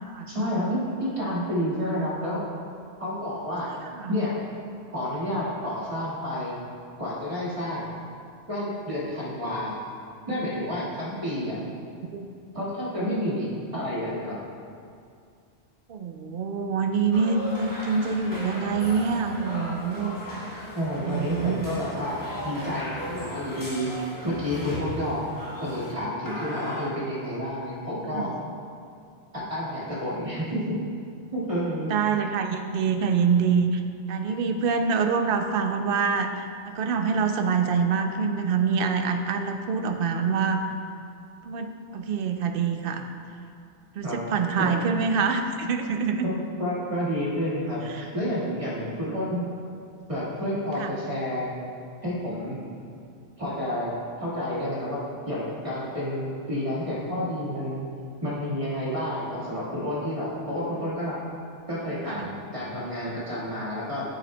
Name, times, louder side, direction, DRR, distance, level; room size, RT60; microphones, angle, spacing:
voice 1, 0.3-2.4 3.0-3.7 4.1-4.4 4.9-6.6 7.0-7.9 8.5-9.7 10.3-11.6 12.5-14.4 20.7-22.2 22.4-25.2 25.6-28.3 29.3-30.8 31.3-31.9 44.0-44.2 44.6-44.7 46.2-49.5 50.1-51.5 52.0-52.6 53.4-53.9 54.2-55.0 55.2-57.8 58.2-61.2 61.7-64.0, equal, 30° right, -8 dB, 1.8 m, -30 dB
voice 2, 15.9-20.2 21.0-21.6 28.1-28.3 31.9-33.8 34.1-40.6 41.4-43.1 44.0-46.3 47.9-48.0 50.8-50.9 62.1-62.3, right 5 dB, 60° right, 6 dB, 0.6 m, -25 dB
sound 1, 17.1-25.9 26.3-26.9, equal, 20° left, 0.9 m, -37 dB
10.0 x 6.5 x 2.2 m, 2.4 s
omnidirectional pair, 1.2 m